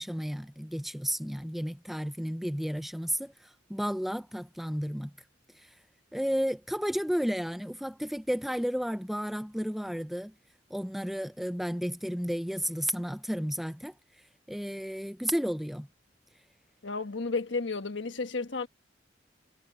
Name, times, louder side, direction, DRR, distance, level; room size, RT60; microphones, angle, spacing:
voice 1, 0.0-3.3 3.7-5.1 5.6-5.7 6.1-10.3 10.7-13.9 14.5-15.9, equal, ahead, 0.6 m, -32 dB
voice 2, 16.8-18.7, left 3 dB, 75° left, 1.4 m, -32 dB
head